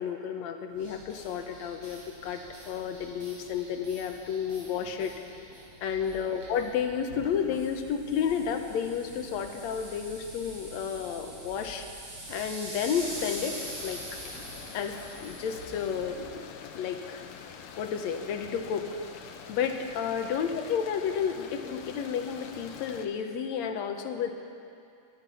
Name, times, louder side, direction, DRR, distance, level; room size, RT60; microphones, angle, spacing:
voice 1, 0.0-5.1 5.8-11.9 12.3-13.6 13.8-14.0 14.7-17.3 17.8-19.0 19.5-24.3, left 7 dB, 70° left, 6 dB, 2.1 m, -31 dB
sound 1, 0.7-16.3, right 1 dB, 50° right, 5.5 m, -44 dB
sound 2, 13.0-23.1, left 6 dB, 85° left, 2.6 m, -46 dB
18.5 x 13.5 x 5.6 m, 2.5 s
omnidirectional pair, 3.6 m